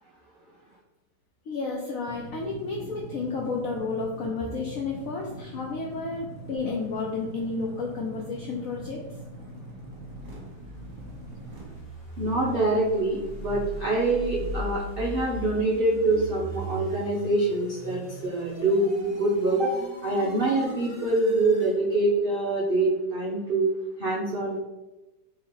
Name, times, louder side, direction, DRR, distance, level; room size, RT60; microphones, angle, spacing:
voice 1, 1.5-9.0, left 4 dB, 80° left, -1 dB, 0.7 m, -31 dB
sound 1, 2.0-11.8, right 1 dB, 45° right, 1.0 m, -42 dB
sound 2, 9.6-21.8, equal, 25° left, 1.1 m, -39 dB
voice 2, 12.2-19.7 20.0-23.7 24.0-24.6, right 2 dB, 85° right, -5 dB, 0.4 m, -25 dB
3.7 x 2.9 x 4.3 m, 1.1 s
omnidirectional pair, 2.1 m